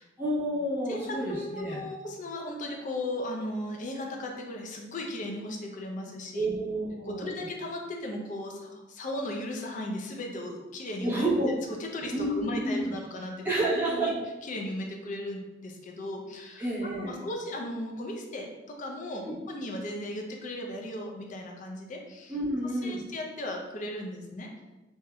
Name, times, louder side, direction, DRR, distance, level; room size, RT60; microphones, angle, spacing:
voice 1, 0.2-1.8 6.3-7.4 11.0-11.5 12.1-12.9 13.4-14.1 16.6-17.2 19.2-19.4 22.3-23.0, right 1 dB, 10° right, -10 dB, 1.0 m, -29 dB
voice 2, 0.9-6.5 7.1-11.2 11.8-13.5 13.9-14.1 14.5-16.7 17.0-22.3 22.8-24.5, left 1 dB, 40° left, 1 dB, 0.4 m, -36 dB
3.4 x 2.6 x 2.2 m, 1.1 s
head